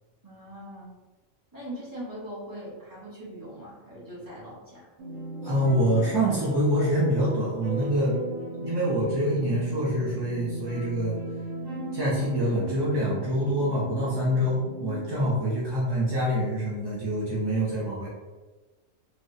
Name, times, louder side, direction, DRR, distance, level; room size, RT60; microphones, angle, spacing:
voice 1, 0.2-0.9 1.5-4.9, equal, 15° right, -9 dB, 1.1 m, -41 dB
sound 1, 5.0-15.3, right 1 dB, 85° right, 1.3 m, -36 dB
voice 2, 5.4-8.2 8.6-11.2 11.9-18.1, equal, 40° right, -7 dB, 0.3 m, -26 dB
3.2 x 2.4 x 2.7 m, 1.2 s
omnidirectional pair, 1.3 m